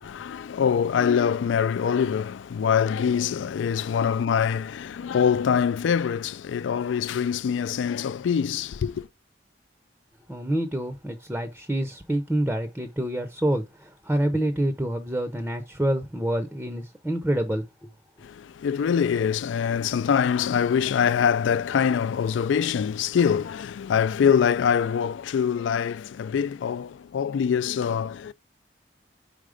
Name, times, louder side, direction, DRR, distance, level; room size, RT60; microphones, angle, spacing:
voice 1, 0.0-9.1 18.2-28.3, left 7 dB, 75° left, 0.3 m, -24 dB
voice 2, 10.3-17.9, right 1 dB, 5° right, 0.6 m, -27 dB
5.0 x 4.2 x 4.9 m
head